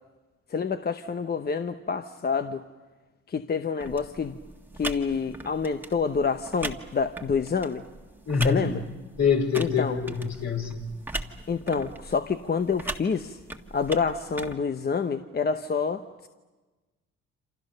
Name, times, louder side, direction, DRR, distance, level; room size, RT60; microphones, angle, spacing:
voice 1, 0.5-2.6 3.3-4.4 4.8-7.8 8.4-8.8 9.6-10.0 11.5-13.4 13.7-16.3, left 5 dB, 30° left, 9 dB, 0.9 m, -27 dB
sound 1, 3.8-14.6, right 1 dB, 5° right, 1.6 m, -39 dB
voice 2, 8.3-8.7 9.2-10.9, left 6 dB, 60° left, 3 dB, 4.4 m, -25 dB
28.0 x 27.0 x 6.6 m, 1.2 s
cardioid pair, 90°, 30 cm